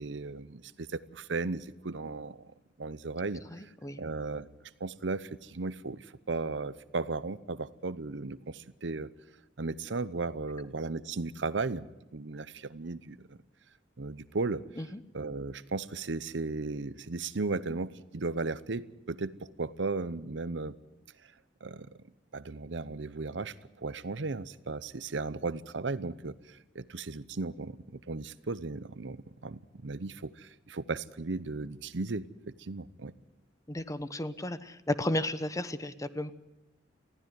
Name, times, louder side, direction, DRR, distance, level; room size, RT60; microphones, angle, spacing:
voice 1, 0.0-2.5 2.8-3.7 4.0-4.5 4.8-9.1 9.6-11.9 12.1-13.4 14.0-14.6 15.1-20.7 21.6-21.9 22.3-33.1, right 3 dB, 75° right, 16 dB, 0.8 m, -36 dB
voice 2, 3.5-4.0 14.8-15.0 33.7-36.3, left 1 dB, 20° left, 12 dB, 0.9 m, -33 dB
20.5 x 15.0 x 9.4 m, 0.98 s
head